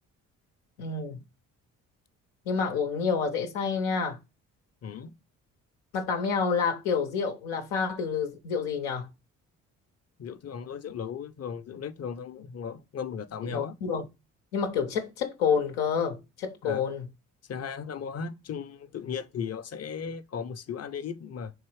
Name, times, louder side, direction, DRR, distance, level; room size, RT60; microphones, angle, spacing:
voice 1, 0.8-1.2 2.5-4.2 5.9-9.1 13.4-14.1 14.5-17.1, left 6 dB, 85° left, 0.7 m, -28 dB
voice 2, 4.8-5.1 10.2-13.7 16.6-16.8 17.5-21.5, left 6 dB, 40° left, 0.6 m, -36 dB
3.7 x 3.0 x 4.7 m
hypercardioid pair, 50°, 38 cm